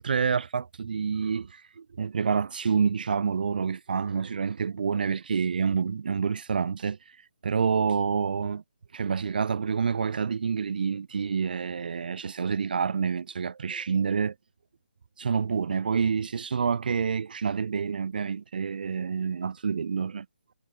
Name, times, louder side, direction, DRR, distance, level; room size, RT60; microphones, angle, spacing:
voice 1, 0.0-7.0 7.4-8.6 8.9-14.3 15.2-20.3, right 6 dB, 55° right, 1.2 m, -28 dB
figure-of-eight pair, 155°, 6 cm